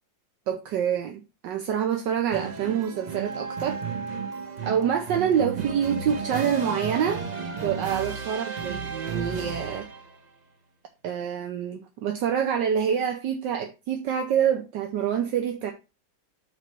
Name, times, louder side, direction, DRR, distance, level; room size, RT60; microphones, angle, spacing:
voice 1, 0.5-3.8 4.6-7.2 7.5-9.9 11.0-15.7, right 8 dB, 75° right, 1.4 m, -26 dB
sound 1, 2.3-10.2, right 6 dB, 45° right, 0.5 m, -34 dB
Wind instrument woodwind instrument, 3.2-7.7, right 2 dB, 15° right, 1.5 m, -40 dB
7.9 x 3.2 x 6.1 m
omnidirectional pair, 2.0 m